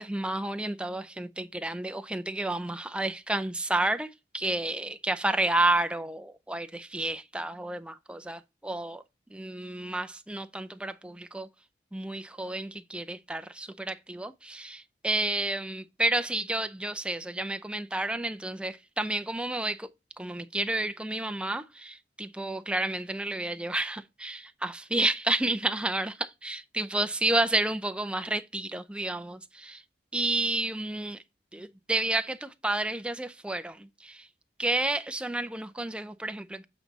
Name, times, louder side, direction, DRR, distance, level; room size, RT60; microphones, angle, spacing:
voice 1, 0.0-4.1 4.3-9.0 9.3-11.5 11.9-19.9 20.2-29.8 30.1-31.2 31.5-34.3 34.6-36.6, right 2 dB, 5° right, 0.4 m, -31 dB
8.1 x 4.1 x 3.9 m
head